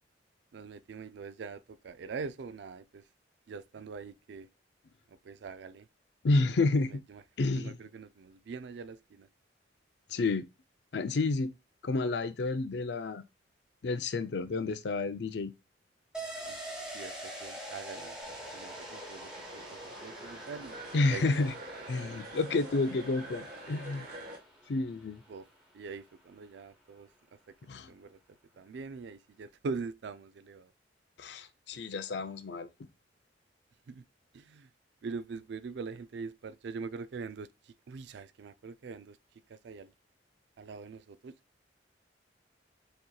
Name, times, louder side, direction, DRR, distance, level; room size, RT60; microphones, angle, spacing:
voice 1, 0.5-3.0 3.5-4.5 5.1-5.9 6.9-7.2 7.5-9.3 16.5-16.6 16.8-18.2 18.5-20.8 21.1-21.5 25.3-25.5 25.7-27.1 27.5-27.6 27.9-28.2 28.6-30.7 33.9-34.0 34.3-34.7 35.0-39.2 39.5-39.9 40.6-41.3, right 4 dB, 65° right, 0.4 m, -43 dB
voice 2, 6.2-7.0 7.4-7.8 10.1-10.5 10.9-11.5 11.8-13.2 13.8-15.5 20.9-21.5 21.9-24.1 24.7-25.2 27.7-27.9 31.2-32.7, left 3 dB, 65° left, 0.4 m, -30 dB
sound 1, 16.1-25.5 25.9-26.0, right 1 dB, 5° right, 1.0 m, -45 dB
sound 2, 18.2-24.4, right 1 dB, 50° right, 1.4 m, -46 dB
6.4 x 2.9 x 2.3 m
head